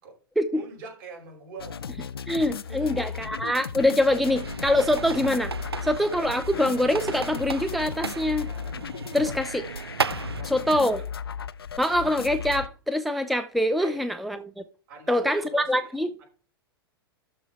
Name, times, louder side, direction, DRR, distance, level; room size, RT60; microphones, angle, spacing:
voice 1, 0.5-2.1 2.7-3.1 9.6-9.7 10.4-10.7 13.8-14.0 14.9-16.3, right 4 dB, 55° right, 5.4 m, -43 dB
sound 1, 1.6-12.7, left 7 dB, 75° left, 0.5 m, -36 dB
voice 2, 2.3-5.5 5.8-8.5 9.1-9.6 10.5-11.0 11.8-14.6 15.1-16.1, left 1 dB, ahead, 0.5 m, -24 dB
sound 2, 4.3-10.4, right 5 dB, 85° right, 0.4 m, -34 dB
12.5 x 4.6 x 4.3 m
figure-of-eight pair, 95°, 13 cm